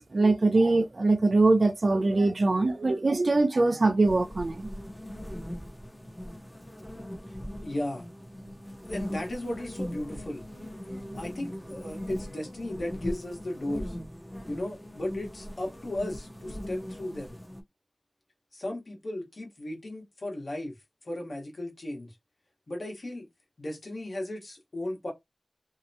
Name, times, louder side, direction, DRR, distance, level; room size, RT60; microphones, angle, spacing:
voice 1, 0.1-4.7, right 2 dB, 60° right, 0.4 m, -23 dB
sound 1, 4.0-17.6, equal, 15° left, 0.7 m, -40 dB
voice 2, 7.6-8.1 8.9-10.5 11.1-13.9 14.5-17.4 18.5-20.7 21.0-22.1 22.7-23.3 23.6-25.1, left 1 dB, 65° left, 1.1 m, -35 dB
2.7 x 2.1 x 2.7 m
wide cardioid pair, 65°, 0 cm